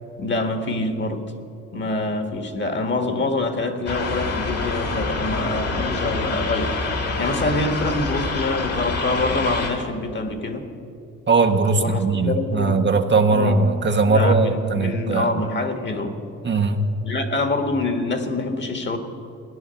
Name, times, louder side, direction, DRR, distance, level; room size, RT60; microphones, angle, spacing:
voice 1, 0.2-1.2 1.7-6.8 7.2-10.6 11.7-12.8 13.3-13.7 14.0-16.2 17.0-19.0, left 2 dB, 40° left, 6 dB, 1.7 m, -25 dB
sound 1, 3.9-9.7, left 3 dB, 55° left, 2.3 m, -26 dB
voice 2, 11.3-15.4 16.4-16.8, right 3 dB, 35° right, 5 dB, 1.0 m, -19 dB
16.5 x 10.5 x 7.0 m, 2.7 s
cardioid pair, 90°, 30 cm